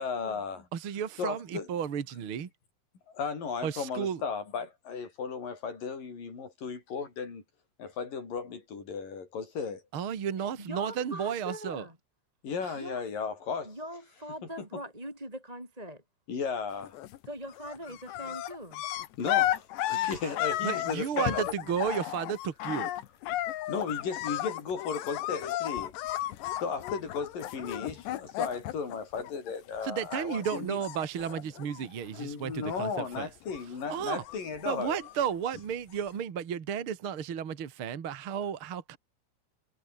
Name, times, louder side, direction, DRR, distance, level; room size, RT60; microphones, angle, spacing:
voice 1, 0.0-0.7 1.2-1.7 3.1-7.4 7.8-9.8 12.4-13.8 14.6-14.7 16.3-17.0 19.2-21.5 23.5-25.9 26.5-30.8 32.1-35.0, left 5 dB, 40° left, 7.2 m, -35 dB
voice 2, 0.7-2.5 3.6-4.2 9.9-11.9 12.6-12.7 20.0-20.2 20.6-22.9 29.8-33.3 33.9-34.2 34.6-39.0, right 8 dB, 60° right, 1.4 m, -33 dB
voice 3, 10.4-11.9 12.7-13.0 13.6-16.0 17.3-18.8 20.1-20.2, equal, 5° right, 5.7 m, -42 dB
sound 1, 16.8-17.3 17.5-29.8 30.1-32.3 32.5-33.2 33.5-35.3 36.0-36.1, left 14 dB, 70° left, 3.2 m, -34 dB
omnidirectional pair, 5.9 m